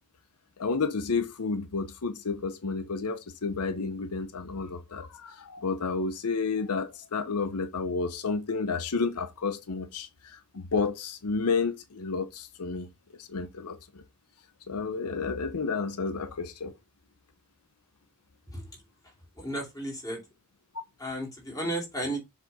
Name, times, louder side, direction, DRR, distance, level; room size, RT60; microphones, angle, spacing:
voice 1, 0.6-12.9 13.2-14.0 14.7-16.7, left 4 dB, 85° left, 0.7 m, -31 dB
voice 2, 19.0-20.2 21.0-22.2, right 1 dB, 15° left, 2.7 m, -34 dB
7.3 x 3.5 x 4.1 m
head